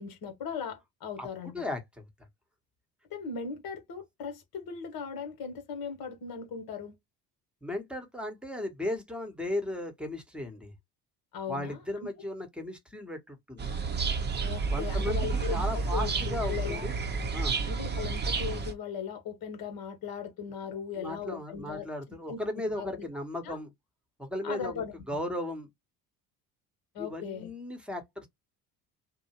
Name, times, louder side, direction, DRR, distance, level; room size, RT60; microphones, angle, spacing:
voice 1, 0.0-1.7 3.1-7.0 11.3-12.1 14.4-16.9 17.7-23.0 23.4-23.6 24.4-25.2 26.9-27.5, left 6 dB, 50° left, 1.2 m, -38 dB
voice 2, 1.5-2.0 7.6-10.7 11.5-13.6 14.7-16.9 17.3-17.6 20.9-23.7 24.2-24.8 25.1-25.7 27.0-28.3, left 1 dB, ahead, 1.1 m, -36 dB
sound 1, 13.6-18.7, right 4 dB, 20° right, 0.8 m, -30 dB
2.7 x 2.1 x 3.0 m
hypercardioid pair, 55°, 48 cm